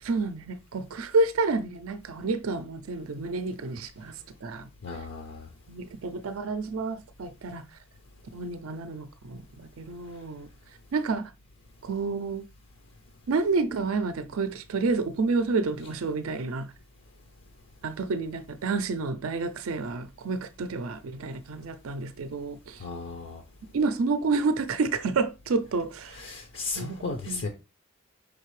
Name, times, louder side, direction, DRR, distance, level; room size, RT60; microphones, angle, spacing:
voice 1, 0.0-5.0 5.7-7.7 8.3-10.5 10.9-11.3 11.8-12.4 13.3-16.7 17.8-22.8 23.7-26.2 26.8-27.5, right 3 dB, 70° right, 0.4 m, -29 dB
voice 2, 4.8-5.5 22.8-23.4 26.2-27.5, left 3 dB, 65° left, 0.6 m, -35 dB
5.1 x 3.3 x 3.1 m
head